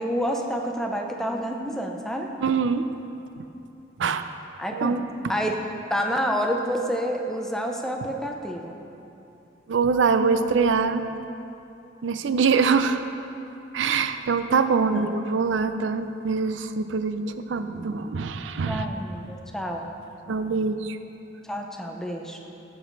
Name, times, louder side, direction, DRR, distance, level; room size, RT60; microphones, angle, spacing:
voice 1, 0.0-2.3 4.6-4.9 5.3-5.6 5.9-8.7 14.9-15.1 18.7-19.9 21.4-22.4, equal, 5° left, 2 dB, 0.6 m, -28 dB
voice 2, 2.4-2.9 3.4-3.5 4.0-4.2 4.7-5.0 9.7-11.1 12.0-13.0 13.7-18.8 20.3-21.0, right 5 dB, 90° right, 10 dB, 0.4 m, -24 dB
14.5 x 6.2 x 3.9 m, 2.8 s
head